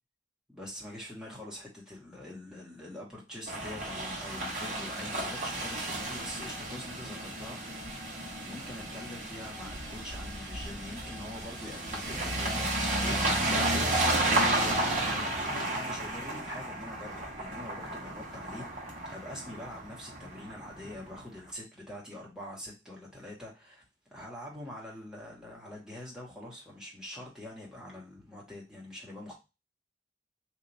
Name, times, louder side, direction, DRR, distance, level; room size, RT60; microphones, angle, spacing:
voice 1, 0.5-8.0 8.4-23.8 24.1-29.3, left 1 dB, 5° right, -4 dB, 1.4 m, -44 dB
sound 1, 3.5-21.1, right 1 dB, 45° right, 1.2 m, -32 dB
3.1 x 2.8 x 3.9 m, 0.26 s
head